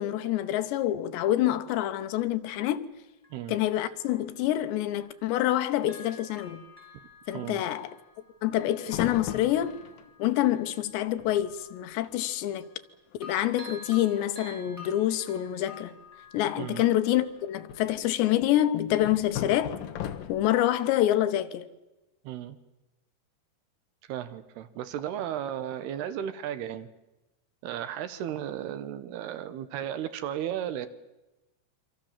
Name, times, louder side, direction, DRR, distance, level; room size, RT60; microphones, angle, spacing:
voice 1, 0.0-2.9 3.5-6.6 7.3-7.9 8.4-9.8 10.2-12.7 13.2-15.9 16.3-19.8 20.3-21.7, left 13 dB, 80° left, 3.2 m, -27 dB
Bell, 2.3-2.4 3.2-5.2 5.5-12.9 13.2-17.8 18.3-18.4, left 2 dB, 5° left, 4.3 m, -50 dB
sound 1, 8.9-10.1 10.9-11.0 11.2-11.6 11.9-12.1 12.6-12.7 13.1-13.4 14.5-15.1 17.1-18.0 19.0-20.6, left 11 dB, 65° left, 2.5 m, -38 dB
voice 2, 22.2-22.6 24.1-26.9 27.6-30.9, right 10 dB, 75° right, 2.9 m, -34 dB
26.5 x 25.0 x 7.4 m
omnidirectional pair, 5.1 m